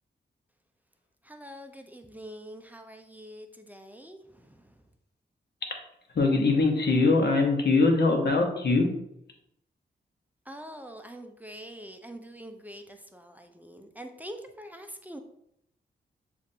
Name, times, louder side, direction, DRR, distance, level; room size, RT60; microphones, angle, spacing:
voice 1, 1.2-4.8 10.5-15.2, equal, 10° right, 5 dB, 0.5 m, -45 dB
voice 2, 6.1-8.9, left 3 dB, 60° left, 2 dB, 1.0 m, -22 dB
7.0 x 2.5 x 2.7 m, 0.76 s
cardioid pair, 70°, 19 cm